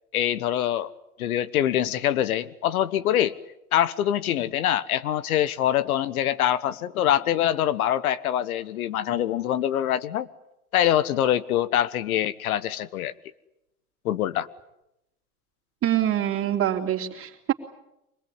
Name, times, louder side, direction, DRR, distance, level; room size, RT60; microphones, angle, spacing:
voice 1, 0.1-0.9 1.2-3.4 3.7-10.3 10.7-13.1 14.0-14.5, left 11 dB, 70° left, 1.3 m, -24 dB
voice 2, 15.8-17.5, right 11 dB, 30° right, 3.2 m, -25 dB
25.5 x 19.5 x 9.6 m
hypercardioid pair, 105°, 45 cm